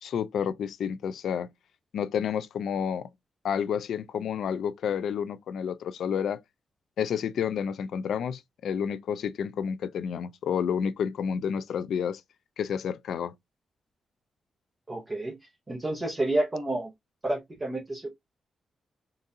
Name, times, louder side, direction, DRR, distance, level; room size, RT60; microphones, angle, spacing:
voice 1, 0.0-1.5 1.9-3.1 3.4-6.4 7.0-12.2 12.6-13.3, left 7 dB, 80° left, 0.3 m, -30 dB
voice 2, 14.9-15.4 15.7-16.9 17.2-18.1, right 1 dB, 20° right, 0.8 m, -29 dB
3.9 x 2.5 x 2.6 m
wide cardioid pair, 175°, 0 cm